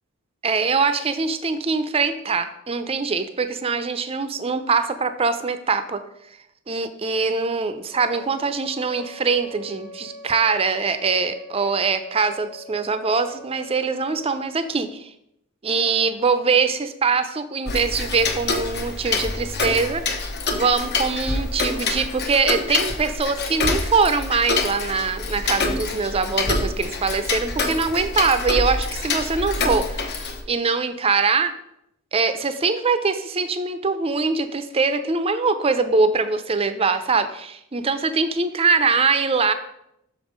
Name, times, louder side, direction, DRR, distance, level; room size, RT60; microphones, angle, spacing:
voice 1, 0.4-6.0 6.7-15.1 15.6-20.0 20.5-31.5 32.1-39.5, right 4 dB, 25° right, 10 dB, 0.5 m, -23 dB
Wind instrument woodwind instrument, 7.9-14.5, left 1 dB, 25° left, 1.4 m, -42 dB
Tick-tock, 17.7-30.4, left 3 dB, 50° left, 0.9 m, -26 dB
6.4 x 5.4 x 5.1 m, 0.78 s
head